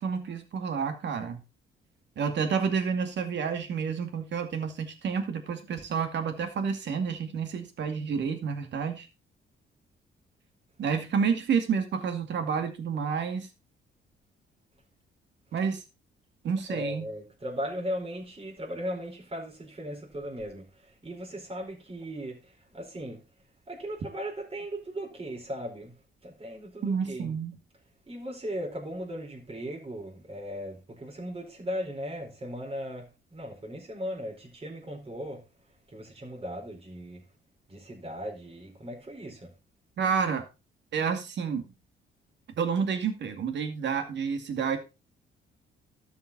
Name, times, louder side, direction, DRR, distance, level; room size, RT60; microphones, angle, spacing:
voice 1, 0.0-1.4 2.2-9.1 10.8-13.5 15.5-15.8 16.4-17.1 26.8-27.5 40.0-40.5 40.9-41.7 42.6-44.8, right 6 dB, 65° right, 2.3 m, -29 dB
voice 2, 16.7-23.3 23.7-27.3 28.1-35.4 35.9-37.2 37.7-39.5, equal, 30° right, 4.7 m, -37 dB
13.0 x 5.9 x 4.2 m
cardioid pair, 90°, 20 cm